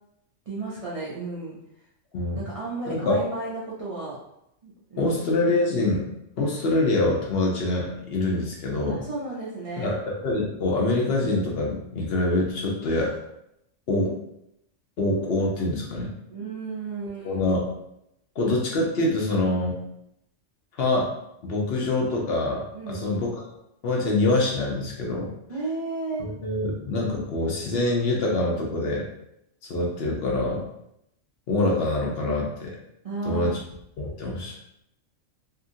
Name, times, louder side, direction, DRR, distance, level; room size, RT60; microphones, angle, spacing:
voice 1, 0.5-1.6 2.3-4.2 4.6-5.2 8.9-10.0 16.3-17.5 22.7-23.2 25.5-26.2 33.0-33.5, right 3 dB, 55° right, -6 dB, 0.3 m, -33 dB
voice 2, 2.9-3.2 5.0-6.1 6.4-9.1 9.8-13.2 13.9-14.1 15.0-16.1 17.2-17.7 18.4-19.8 20.7-21.1 21.4-23.5 23.8-25.3 26.2-29.1 29.6-30.6 31.5-32.7 33.3-33.6 34.0-34.6, left 2 dB, 60° left, -2 dB, 0.7 m, -25 dB
2.8 x 2.5 x 2.6 m, 0.80 s
omnidirectional pair, 1.3 m